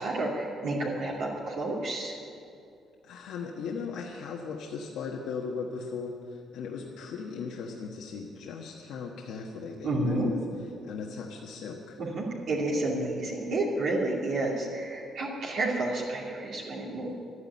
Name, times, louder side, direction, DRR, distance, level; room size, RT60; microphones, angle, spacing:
voice 1, 0.0-2.1 9.8-10.3 12.0-17.2, right 2 dB, 60° right, -5 dB, 2.7 m, -30 dB
voice 2, 3.0-10.4 10.8-12.0, left 5 dB, 85° left, -1 dB, 1.3 m, -37 dB
13.0 x 9.7 x 9.8 m, 2.5 s
cardioid pair, 155°, 0 cm